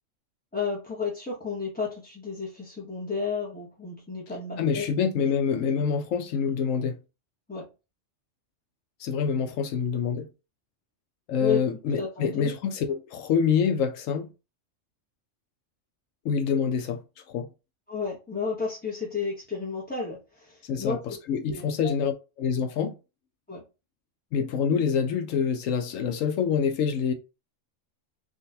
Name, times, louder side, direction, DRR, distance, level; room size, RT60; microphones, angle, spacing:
voice 1, 0.5-4.9 5.5-5.9 7.5-7.7 11.4-11.6 12.0-12.5 17.9-21.2 21.5-21.9 23.5-23.6, left 5 dB, 10° left, 0.6 m, -32 dB
voice 2, 4.6-7.0 9.0-10.3 11.3-14.3 16.2-17.0 17.3-17.5 20.6-22.1 22.4-22.9 24.3-27.1, left 6 dB, 85° left, 1.0 m, -26 dB
3.8 x 2.4 x 2.7 m
omnidirectional pair, 1.3 m